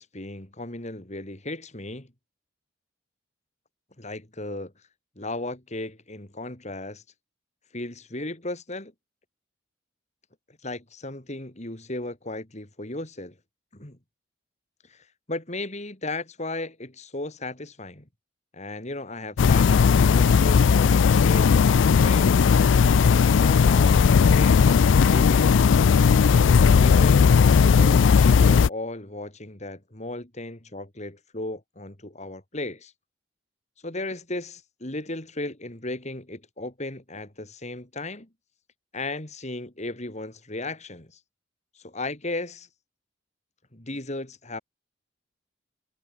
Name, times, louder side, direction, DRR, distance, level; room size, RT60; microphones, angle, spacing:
voice 1, 0.0-2.1 4.0-4.7 5.2-7.0 7.7-8.9 10.6-13.3 13.7-14.0 14.8-18.0 18.5-22.5 22.9-25.7 26.1-27.2 27.6-32.9 33.8-38.3 38.9-41.2 41.7-42.7 43.7-44.6, left 2 dB, 40° left, 3.9 m, -36 dB
sound 1, 19.4-28.7, left 6 dB, 80° left, 0.4 m, -17 dB
head